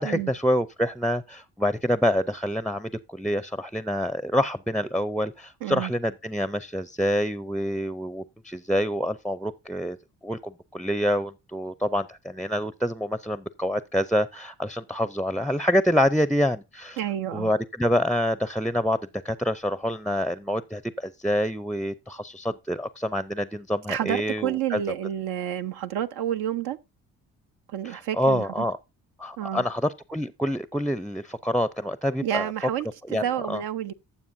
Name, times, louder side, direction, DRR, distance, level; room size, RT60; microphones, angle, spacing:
voice 1, 0.0-10.0 10.2-17.0 17.3-19.0 19.2-24.8 27.8-28.8 29.2-32.5 33.1-33.6, equal, ahead, 0.5 m, -27 dB
voice 2, 5.6-5.9 17.0-17.5 23.9-26.8 27.7-28.5 29.4-29.6 32.2-33.9, right 11 dB, 70° right, 0.7 m, -29 dB
14.5 x 7.1 x 2.6 m
hypercardioid pair, 45°, 40 cm